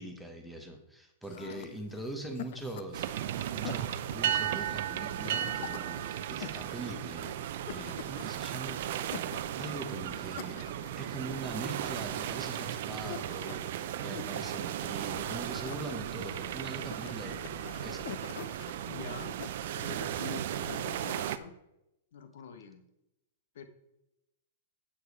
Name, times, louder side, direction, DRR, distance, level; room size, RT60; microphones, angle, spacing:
voice 1, 0.0-10.7 11.0-18.1, right 2 dB, ahead, 3 dB, 1.1 m, -42 dB
sound 1, 1.2-21.2, left 10 dB, 55° left, 0.7 m, -48 dB
voice 2, 1.3-2.1 18.9-19.4 19.8-21.6 22.1-22.8 23.5-23.6, left 5 dB, 70° left, 8 dB, 1.3 m, -45 dB
sound 2, 2.9-21.4, right 11 dB, 55° right, 0.6 m, -35 dB
8.6 x 7.6 x 4.8 m, 0.88 s
hypercardioid pair, 155°, 0 cm